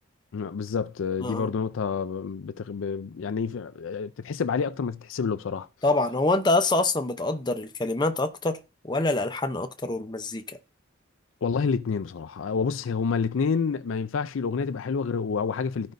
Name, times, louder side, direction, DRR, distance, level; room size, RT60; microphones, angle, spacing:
voice 1, 0.3-5.7 11.4-15.9, left 5 dB, 70° left, 0.4 m, -28 dB
voice 2, 1.2-1.5 5.8-8.6 8.8-10.6, left 2 dB, 20° left, 0.6 m, -25 dB
14.5 x 5.2 x 2.6 m
head